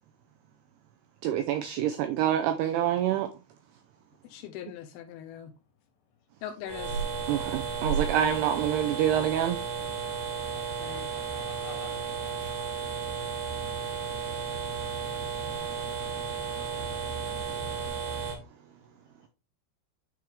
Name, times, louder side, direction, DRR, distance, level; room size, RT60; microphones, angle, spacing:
voice 1, 1.2-3.3 7.3-9.6, right 10 dB, 85° right, 2.3 m, -26 dB
voice 2, 4.2-5.5 6.4-7.0 10.8-11.1, left 10 dB, 80° left, 2.3 m, -41 dB
sound 1, 6.6-18.4, right 6 dB, 70° right, 3.7 m, -33 dB
voice 3, 10.5-12.0 18.5-19.3, left 5 dB, 50° left, 2.6 m, -51 dB
9.5 x 4.6 x 3.5 m
omnidirectional pair, 5.3 m